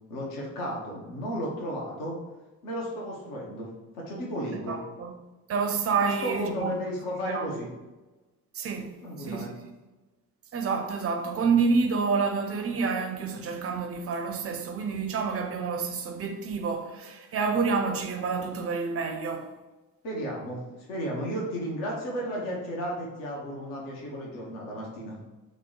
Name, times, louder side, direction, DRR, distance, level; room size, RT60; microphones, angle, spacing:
voice 1, 0.1-2.1 2.6-4.8 6.0-7.7 9.0-9.5 20.0-20.6 20.9-25.2, equal, 70° left, 0.8 m, -33 dB
voice 2, 4.7-5.1 5.5-6.8 7.2-7.6 8.5-9.6 10.5-19.5, right 5 dB, 30° right, 0.4 m, -28 dB
2.9 x 2.0 x 3.7 m
figure-of-eight pair, 40°, 46 cm